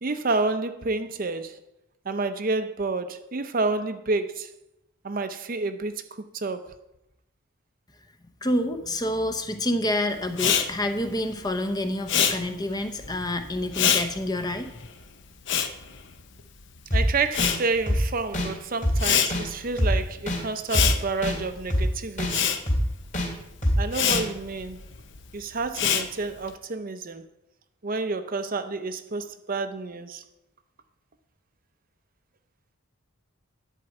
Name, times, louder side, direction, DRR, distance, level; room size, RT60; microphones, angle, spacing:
voice 1, 0.0-1.6 2.1-4.5 5.0-6.0 6.3-6.7 16.9-22.6 23.8-24.8 25.3-27.2 27.8-30.2, right 3 dB, 40° right, 0.6 m, -29 dB
voice 2, 8.4-14.7, left 1 dB, 20° left, 0.7 m, -28 dB
Respiratory sounds, 10.3-16.8 17.0-26.5, left 8 dB, 55° left, 0.8 m, -27 dB
sound 1, 16.9-17.0 17.4-17.5 17.9-18.0 18.3-18.5 18.8-19.0 19.3-19.4 19.8-19.9 20.3-20.4 20.7-20.9 21.2-21.4 21.7-21.8 22.2-22.3 22.7-22.8 23.1-23.3 23.6-23.8 24.1-24.2, left 1 dB, 35° left, 2.5 m, -24 dB
11.0 x 4.7 x 8.0 m
head